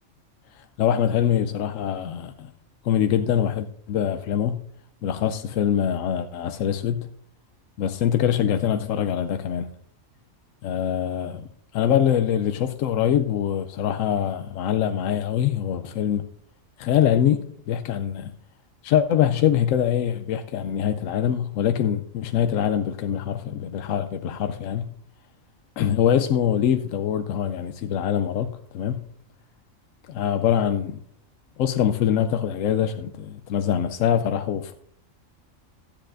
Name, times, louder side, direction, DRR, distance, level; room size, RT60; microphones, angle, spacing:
voice 1, 0.5-2.5 2.8-4.6 5.0-7.1 7.8-9.7 10.6-11.5 11.7-16.2 16.8-18.3 18.8-24.9 25.8-29.0 30.1-31.0 31.6-34.7, left 9 dB, 80° left, 0.9 m, -24 dB
13.5 x 10.0 x 2.5 m
omnidirectional pair, 1.4 m